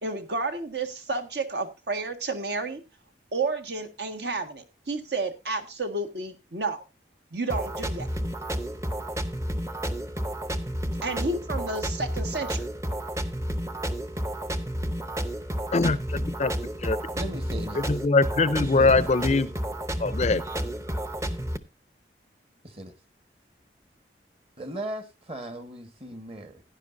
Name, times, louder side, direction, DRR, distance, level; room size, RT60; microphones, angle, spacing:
voice 1, 0.0-2.8 3.3-6.8 7.3-8.1 11.0-12.7, right 3 dB, 65° right, 1.6 m, -31 dB
sound 1, 7.5-21.6, equal, 15° right, 0.7 m, -31 dB
voice 2, 15.7-16.5 16.8-17.0 17.7-19.5 20.0-20.4, left 3 dB, 40° left, 0.5 m, -22 dB
voice 3, 17.1-17.8 18.6-19.0 22.6-22.9 24.6-26.6, right 1 dB, 35° right, 1.4 m, -37 dB
16.0 x 10.0 x 2.6 m
head